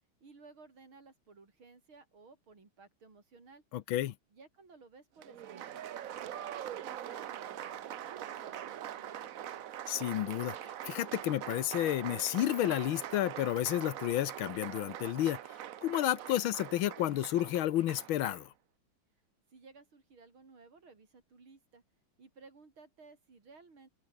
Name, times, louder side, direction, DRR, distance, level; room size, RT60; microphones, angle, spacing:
voice 1, 0.2-3.6 4.3-9.7 19.5-21.8 22.2-23.9, right 4 dB, 90° right, 5.0 m, -57 dB
voice 2, 3.7-4.1 9.9-10.5 10.9-15.4 15.8-18.5, left 13 dB, 85° left, 1.7 m, -31 dB
Applause, 5.2-18.5, right 11 dB, 60° right, 0.9 m, -43 dB
open air
omnidirectional pair, 2.2 m